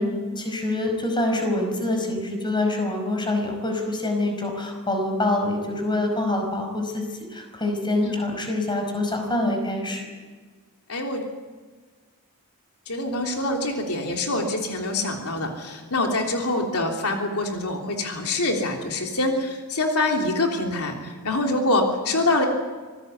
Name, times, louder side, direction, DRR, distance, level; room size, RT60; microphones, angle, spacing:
voice 1, 0.0-7.0 7.3-10.0, left 2 dB, 20° left, 4 dB, 5.1 m, -25 dB
voice 2, 10.9-11.2 12.9-22.5, left 2 dB, 80° left, 2 dB, 3.3 m, -25 dB
25.5 x 18.5 x 8.1 m, 1.4 s
head